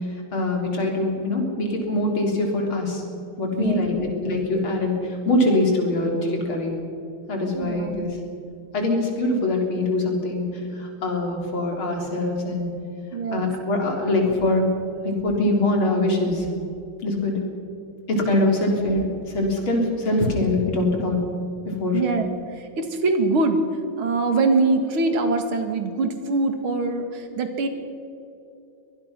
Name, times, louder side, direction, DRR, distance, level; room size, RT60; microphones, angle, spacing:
voice 1, 0.3-3.0 3.4-6.8 7.3-8.1 8.7-10.5 10.8-12.7 13.3-14.7 15.0-16.5 17.0-17.4 18.1-19.1 19.3-21.2 21.7-22.0, left 2 dB, 70° left, 1 dB, 4.5 m, -23 dB
voice 2, 7.5-8.1 13.1-13.5 21.9-22.3 22.6-23.6 24.0-27.7, right 3 dB, 75° right, 6 dB, 2.8 m, -23 dB
24.0 x 19.0 x 6.0 m, 2.7 s
omnidirectional pair, 2.4 m